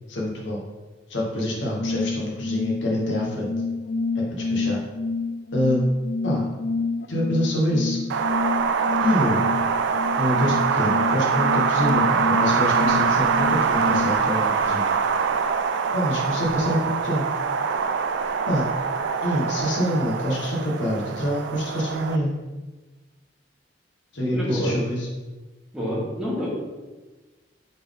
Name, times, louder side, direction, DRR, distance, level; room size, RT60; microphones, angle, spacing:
voice 1, 0.1-0.6 1.1-3.5 4.1-4.8 5.5-5.8 6.2-6.4 7.1-8.0 9.0-9.4 10.1-15.0 15.9-17.2 18.5-18.7 19.2-22.3 24.1-25.1, equal, 70° left, -2 dB, 1.1 m, -26 dB
sound 1, 1.6-14.2, left 3 dB, 55° left, 0.3 m, -29 dB
Wind, 8.1-22.2, right 6 dB, 65° right, 0.3 m, -24 dB
voice 2, 24.3-24.8 25.7-26.5, equal, ahead, -7 dB, 1.3 m, -28 dB
4.2 x 3.6 x 3.5 m, 1.2 s
head